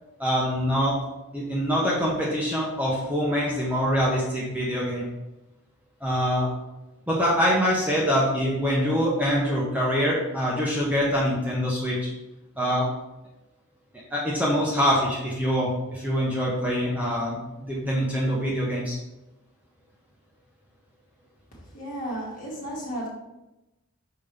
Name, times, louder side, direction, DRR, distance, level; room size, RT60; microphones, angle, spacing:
voice 1, 0.2-1.0 1.3-5.1 6.0-6.5 7.1-12.1 12.6-12.9 14.1-18.9, equal, 5° right, 0.9 m, -24 dB
voice 2, 21.7-23.1, right 1 dB, 40° left, 2.0 m, -33 dB
5.6 x 5.1 x 3.4 m
head